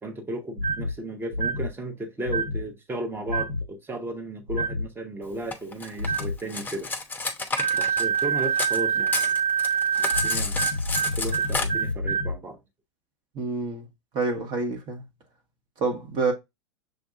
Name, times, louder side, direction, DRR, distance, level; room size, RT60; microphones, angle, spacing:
voice 1, 0.0-6.9 7.7-9.4 10.0-10.6 11.2-12.6, right 1 dB, 15° right, 1.0 m, -34 dB
sound 1, 0.6-0.9 1.3-1.7 2.2-2.6 3.3-3.6 4.5-4.8 6.0-6.3 7.6-12.3, right 4 dB, 85° right, 2.6 m, -26 dB
Cutlery silverware, 5.5-8.8 9.1-11.7, left 3 dB, 10° left, 0.7 m, -31 dB
voice 2, 13.3-13.8 14.1-15.0 15.8-16.3, right 3 dB, 35° right, 1.2 m, -27 dB
6.5 x 2.5 x 2.4 m
figure-of-eight pair, 90°, 15 cm